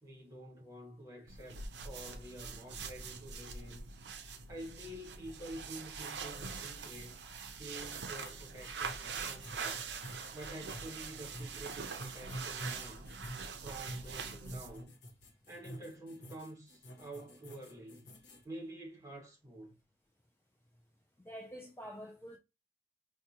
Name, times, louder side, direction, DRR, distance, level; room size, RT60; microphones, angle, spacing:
voice 1, 0.0-3.8 4.5-7.3 7.6-9.9 10.3-13.2 13.6-14.9 15.5-19.8, right 1 dB, 20° right, 1.3 m, -49 dB
sound 1, 1.3-14.8, right 5 dB, 85° right, 0.5 m, -44 dB
sound 2, 8.2-18.4, equal, 85° left, 1.0 m, -48 dB
voice 2, 21.2-22.4, equal, 15° left, 0.4 m, -47 dB
4.7 x 2.2 x 2.9 m
head